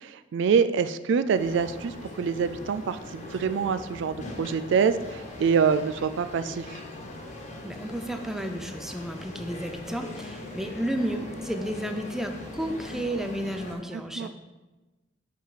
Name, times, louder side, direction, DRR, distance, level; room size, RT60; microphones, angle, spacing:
voice 1, 0.0-6.8 13.9-14.3, right 6 dB, 65° right, 11 dB, 0.3 m, -26 dB
sound 1, 1.3-13.7, left 2 dB, 40° left, 1.2 m, -40 dB
voice 2, 7.6-14.3, right 1 dB, ahead, 6 dB, 0.5 m, -32 dB
5.7 x 4.8 x 5.6 m, 1.1 s
head